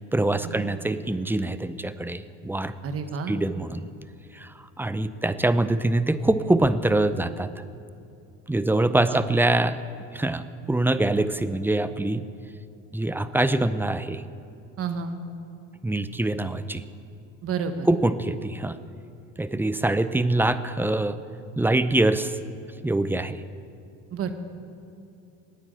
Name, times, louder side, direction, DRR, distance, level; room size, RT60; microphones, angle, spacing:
voice 1, 0.0-2.7 3.3-3.9 4.3-4.5 4.8-7.5 8.5-9.8 10.1-12.2 12.9-14.2 15.8-16.8 17.9-18.8 19.4-21.2 21.6-22.3 22.8-23.4, right 2 dB, 5° right, 13 dB, 0.5 m, -24 dB
voice 2, 2.8-3.4 9.1-9.2 14.8-15.2 17.4-17.9 24.1-24.3, right 6 dB, 45° right, 8 dB, 1.4 m, -30 dB
12.5 x 9.7 x 8.9 m, 2.6 s
cardioid pair, 105°, 31 cm